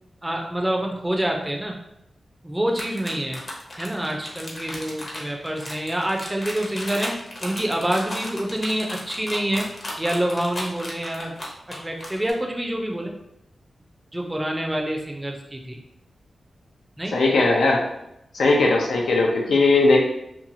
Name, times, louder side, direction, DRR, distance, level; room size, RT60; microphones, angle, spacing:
voice 1, 0.2-1.8 2.4-3.4 3.8-9.7 10.0-11.4 11.7-13.1 14.1-15.8 17.0-17.2, right 1 dB, 10° right, 1 dB, 0.4 m, -27 dB
sound 1, 2.7-12.3, left 1 dB, 40° left, 0.7 m, -35 dB
voice 2, 17.1-17.8 18.3-20.0, left 3 dB, 90° left, 0 dB, 0.5 m, -18 dB
2.8 x 2.3 x 2.6 m, 0.81 s
wide cardioid pair, 85°, 0 cm